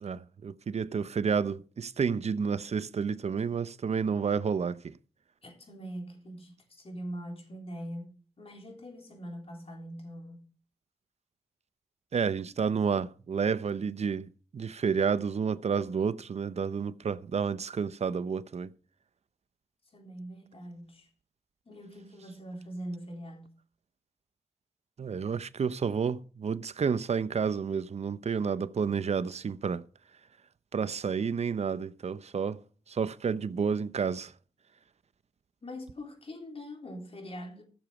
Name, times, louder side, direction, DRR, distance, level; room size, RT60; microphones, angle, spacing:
voice 1, 0.0-4.9 12.1-18.7 25.0-29.9 30.7-32.6 32.9-34.3, right 6 dB, 60° right, 0.7 m, -30 dB
voice 2, 5.4-10.5 19.9-21.1 21.7-23.6 35.6-37.6, equal, 50° left, 3.8 m, -42 dB
15.0 x 7.0 x 5.0 m
cardioid pair, 45°, 13 cm